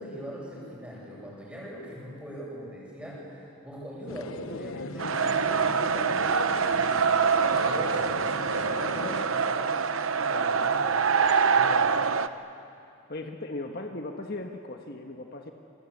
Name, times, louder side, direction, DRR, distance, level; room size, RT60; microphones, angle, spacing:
voice 1, 0.0-11.9, equal, 5° right, -4 dB, 7.9 m, -41 dB
sound 1, 4.1-9.3, left 3 dB, 90° left, 1.1 m, -38 dB
sound 2, 5.0-12.3, right 5 dB, 80° right, 0.9 m, -25 dB
voice 2, 13.1-15.5, left 2 dB, 50° left, 3 dB, 1.5 m, -37 dB
29.0 x 23.0 x 8.7 m, 2.6 s
head